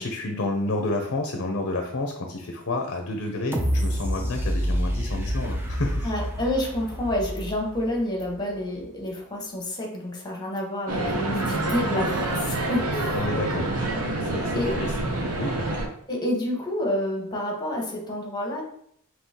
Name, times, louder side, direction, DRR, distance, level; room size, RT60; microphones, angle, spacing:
voice 1, 0.0-6.1 13.1-13.7 14.2-15.1 15.4-15.6, left 2 dB, 55° left, 3 dB, 0.6 m, -30 dB
sound 1, 3.5-8.4 8.9-9.0, equal, 10° right, 0.5 m, -28 dB
voice 2, 6.0-13.6 14.5-14.7 16.1-18.6, left 1 dB, 20° left, -1 dB, 1.0 m, -29 dB
sound 2, 10.9-15.9, right 2 dB, 75° right, 0.8 m, -27 dB
5.3 x 2.9 x 2.8 m, 0.67 s
head